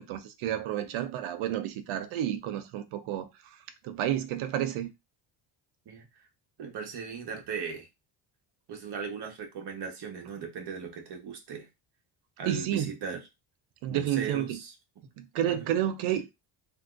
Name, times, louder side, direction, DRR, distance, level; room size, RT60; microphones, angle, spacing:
voice 1, 0.0-3.3 3.8-4.9 12.5-12.9 13.8-14.6 15.2-16.3, right 11 dB, 80° right, 0.7 m, -30 dB
voice 2, 6.6-7.9 8.7-11.7 12.4-13.2 13.9-14.7 15.5-15.7, right 6 dB, 55° right, 1.2 m, -38 dB
3.4 x 2.8 x 2.5 m
cardioid pair, 120°, 48 cm